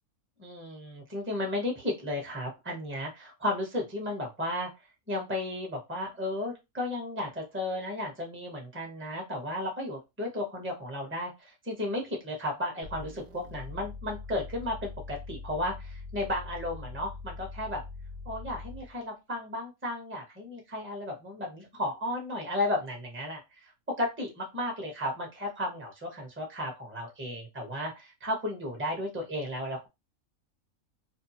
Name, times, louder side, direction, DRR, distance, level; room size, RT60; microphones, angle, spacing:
voice 1, 0.4-4.7 5.1-17.8 18.2-23.7 24.0-29.9, left 1 dB, 10° right, 0 dB, 0.7 m, -34 dB
sound 1, 12.8-19.0, left 3 dB, 75° right, 0.5 m, -43 dB
2.7 x 2.2 x 2.8 m, 0.23 s
omnidirectional pair, 1.6 m